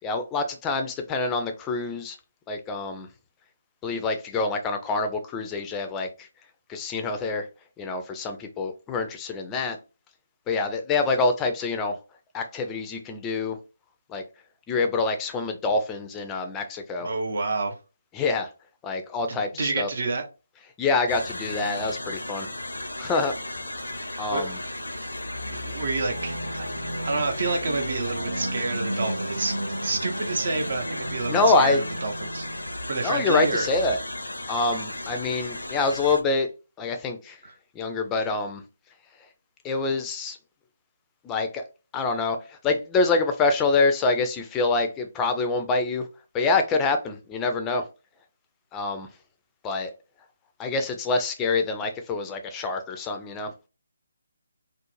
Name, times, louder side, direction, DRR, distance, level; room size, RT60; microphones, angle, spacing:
voice 1, 0.0-2.2 2.5-3.1 3.8-6.3 6.7-7.5 7.8-9.8 10.5-12.0 12.3-13.6 14.1-14.2 14.7-17.1 18.1-18.5 18.8-19.9 20.8-22.5 23.0-23.3 24.2-24.6 31.3-31.8 33.0-34.0 34.5-36.5 36.8-37.4 37.7-38.6 39.6-40.4 41.2-41.6 41.9-46.1 46.3-47.9 48.7-49.1 49.6-49.9 50.6-53.5, left 3 dB, 15° left, 0.4 m, -26 dB
voice 2, 17.0-17.8 19.3-20.2 24.3-24.4 25.5-26.7 27.0-29.5 29.8-33.7 37.4-37.5, right 3 dB, 55° right, 0.7 m, -29 dB
sound 1, 21.1-36.2, left 1 dB, 80° left, 0.5 m, -35 dB
sound 2, 26.0-33.4, right 1 dB, 90° right, 0.3 m, -34 dB
2.5 x 2.0 x 3.0 m
figure-of-eight pair, 145°, 0 cm